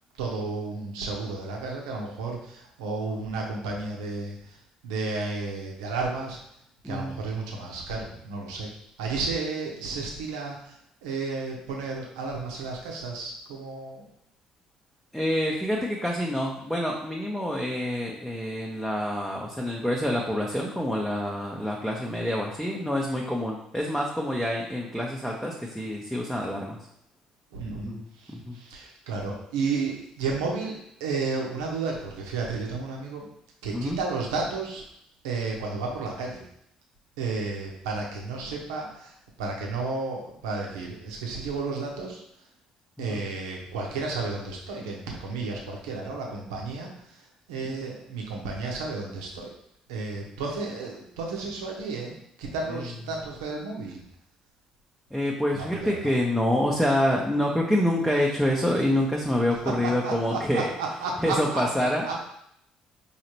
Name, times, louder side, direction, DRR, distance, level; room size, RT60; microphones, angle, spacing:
voice 1, 0.1-4.6 4.8-6.4 6.8-8.7 9.0-14.1 27.5-33.3 33.6-34.8 35.2-36.4 37.2-42.2 43.0-49.5 49.9-54.0 55.5-56.1 59.8-61.6 62.0-62.2, right 3 dB, 75° right, 0 dB, 0.8 m, -32 dB
voice 2, 6.8-7.2 15.1-26.8 27.8-28.0 28.3-28.6 33.7-34.0 43.0-43.2 52.7-52.8 55.1-60.7 61.2-62.0, left 1 dB, ahead, -2 dB, 0.7 m, -27 dB
4.9 x 2.8 x 2.9 m, 0.74 s
figure-of-eight pair, 50°, 3 cm